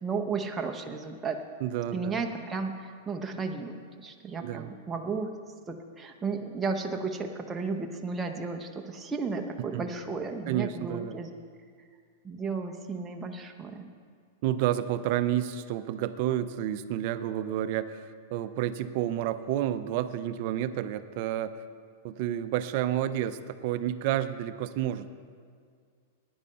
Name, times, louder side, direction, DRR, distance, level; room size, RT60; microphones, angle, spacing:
voice 1, 0.0-1.4 1.9-5.3 5.7-11.3 12.2-13.9, right 4 dB, 15° right, 3 dB, 0.7 m, -34 dB
voice 2, 1.6-2.2 4.4-4.7 9.7-9.9 10.5-11.2 14.4-21.6 22.0-25.1, right 12 dB, 55° right, 12 dB, 0.5 m, -30 dB
10.5 x 9.5 x 5.6 m, 2.1 s
hypercardioid pair, 130°, 0 cm